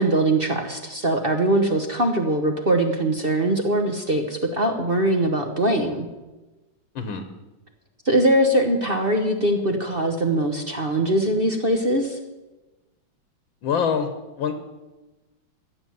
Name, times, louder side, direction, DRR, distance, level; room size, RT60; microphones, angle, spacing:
voice 1, 0.0-6.1 8.0-12.2, right 1 dB, 35° right, 4 dB, 1.1 m, -22 dB
voice 2, 13.6-14.1 14.4-14.5, left 6 dB, 80° left, 7 dB, 1.9 m, -24 dB
14.5 x 7.1 x 9.4 m, 1.1 s
omnidirectional pair, 2.1 m